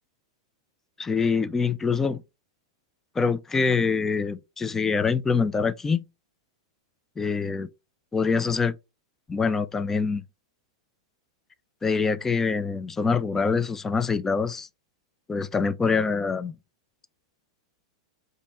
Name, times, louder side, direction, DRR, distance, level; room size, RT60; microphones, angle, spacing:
voice 1, 1.0-2.2 3.2-6.0 7.2-7.7 8.1-8.7 9.3-10.2 11.8-14.7 15.3-16.5, left 5 dB, 15° left, 0.3 m, -25 dB
5.1 x 2.6 x 4.0 m
figure-of-eight pair, 95°, 3 cm